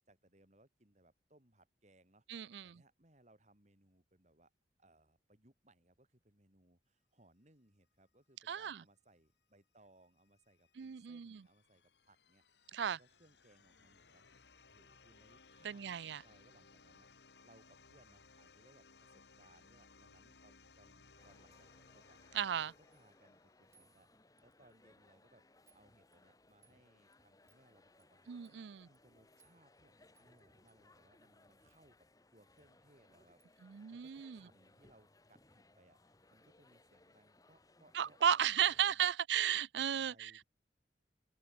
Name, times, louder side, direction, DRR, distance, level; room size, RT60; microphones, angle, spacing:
voice 1, 0.1-4.5 4.8-17.1 17.4-22.2 22.6-25.4 25.7-39.1 39.8-40.4, right 1 dB, 40° right, 4.9 m, -68 dB
voice 2, 2.3-2.8 8.5-8.8 10.8-11.4 12.7-13.0 15.6-16.2 22.3-22.7 28.3-28.9 33.6-34.4 37.9-40.3, right 9 dB, 80° right, 0.4 m, -35 dB
sound 1, 10.0-23.8, left 4 dB, 75° left, 1.9 m, -63 dB
sound 2, 21.2-38.9, left 2 dB, 20° left, 1.3 m, -67 dB
sound 3, 22.9-23.1 23.7-24.8 25.0-25.3 25.7-25.8 26.1-26.8 27.1-27.2 27.5-27.6 28.0-28.1 28.4-28.6 28.9-29.0 29.4-29.8 30.1-30.4 30.7-30.8 31.7-31.9 32.6-32.7 33.0-33.1 33.4-33.6 34.1-34.2, right 5 dB, 15° right, 5.4 m, -72 dB
open air
head